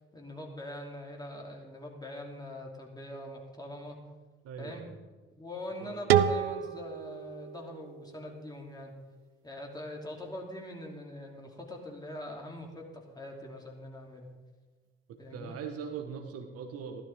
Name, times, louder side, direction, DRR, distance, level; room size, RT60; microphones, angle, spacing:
voice 1, 0.1-4.0 4.6-4.9 5.3-9.0 9.4-14.3 15.2-15.6, left 1 dB, 15° left, 0 dB, 3.0 m, -43 dB
voice 2, 4.4-5.0 5.8-6.1 15.1-17.0, right 6 dB, 55° right, 5 dB, 1.4 m, -41 dB
sound 1, 6.1-8.9, right 9 dB, 80° right, 0.5 m, -30 dB
15.0 x 12.5 x 3.7 m, 1.4 s
figure-of-eight pair, 50°, 30 cm